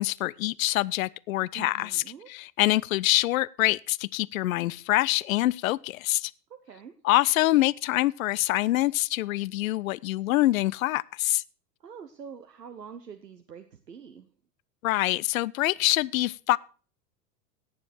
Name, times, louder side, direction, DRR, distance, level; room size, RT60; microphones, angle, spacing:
voice 1, 0.0-2.0 2.3-6.3 7.0-11.4 14.8-16.6, left 17 dB, 60° left, 0.5 m, -25 dB
voice 2, 1.5-2.3 6.5-6.9 11.8-14.3, right 7 dB, 80° right, 1.1 m, -45 dB
18.0 x 7.0 x 4.3 m
figure-of-eight pair, 90°, 48 cm